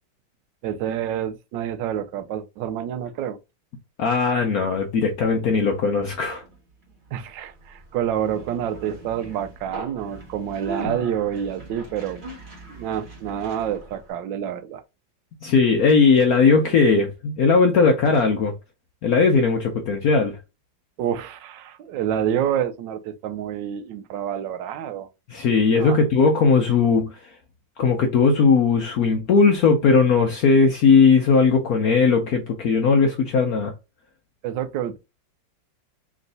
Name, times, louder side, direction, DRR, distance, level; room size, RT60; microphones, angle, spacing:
voice 1, 0.6-3.4 7.1-12.2 12.7-14.8 21.0-25.1 25.8-26.0 34.4-35.0, right 9 dB, 80° right, 1.3 m, -28 dB
voice 2, 4.0-6.4 15.4-18.5 19.0-20.3 25.3-27.2 27.8-33.7, left 4 dB, 65° left, 1.0 m, -18 dB
Conversation, 4.8-14.1, right 2 dB, 30° right, 1.3 m, -40 dB
3.5 x 3.1 x 3.8 m
omnidirectional pair, 2.0 m